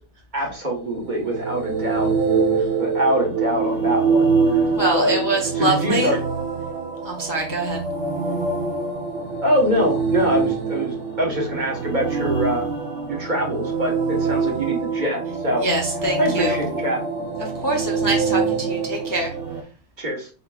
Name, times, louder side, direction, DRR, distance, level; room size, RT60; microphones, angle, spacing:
voice 1, 0.3-2.1 2.5-5.2 5.5-6.2 9.4-12.7 13.1-15.6 16.2-17.0 20.0-20.3, equal, 40° right, -1 dB, 1.3 m, -24 dB
sound 1, 0.8-19.6, right 5 dB, 75° right, 1.2 m, -24 dB
voice 2, 4.7-6.1 7.0-7.8 15.6-16.6 17.4-19.3, right 1 dB, 20° left, 0 dB, 0.6 m, -24 dB
5.3 x 3.8 x 2.3 m, 0.37 s
omnidirectional pair, 1.2 m